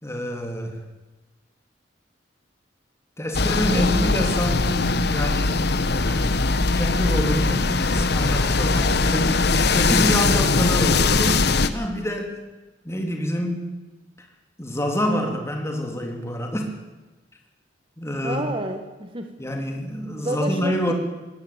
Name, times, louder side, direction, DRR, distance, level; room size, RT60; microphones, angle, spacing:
voice 1, 0.0-0.9 3.2-6.3 6.7-11.5 11.7-12.4 12.8-13.7 14.2-14.3 14.6-16.7 18.0-18.4 19.4-20.9, equal, 15° left, 3 dB, 3.6 m, -27 dB
sound 1, 3.3-11.7, left 3 dB, 60° left, 1.2 m, -21 dB
voice 2, 3.7-4.2 4.5-4.6 18.2-19.3 20.2-20.9, right 1 dB, 30° right, 6 dB, 1.5 m, -30 dB
20.5 x 17.0 x 8.9 m, 1.1 s
head